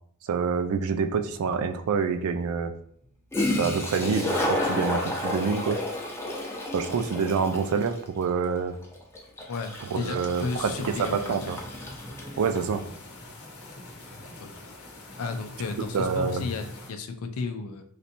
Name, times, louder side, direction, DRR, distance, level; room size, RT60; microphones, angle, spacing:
voice 1, 0.2-2.7 3.6-5.8 6.7-8.7 9.8-11.6 12.4-12.8 15.9-16.5, right 5 dB, 70° right, 8 dB, 0.3 m, -27 dB
Toilet flush, 1.3-1.4 3.0-3.1 3.3-12.7, left 1 dB, 10° left, 0.5 m, -31 dB
voice 2, 9.5-11.4 14.2-14.5 15.2-17.8, left 4 dB, 70° left, 7 dB, 0.4 m, -33 dB
sound 1, 10.3-16.9, left 2 dB, 90° left, 0.8 m, -45 dB
3.2 x 2.6 x 2.8 m, 0.64 s
head